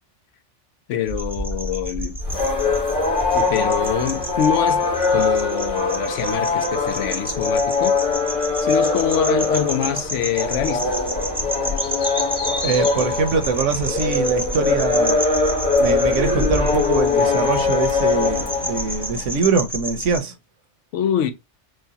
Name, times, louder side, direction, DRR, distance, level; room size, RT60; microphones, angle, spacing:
voice 1, 0.9-2.2 3.3-8.0 8.6-11.0 20.9-21.3, left 9 dB, 80° left, 0.9 m, -24 dB
sound 1, 1.1-20.2, equal, 5° right, 0.6 m, -31 dB
sound 2, 2.2-19.2, left 3 dB, 45° left, 1.7 m, -22 dB
voice 2, 12.6-15.2 15.8-20.4, right 5 dB, 85° right, 1.1 m, -23 dB
6.3 x 2.2 x 2.8 m
omnidirectional pair, 1.2 m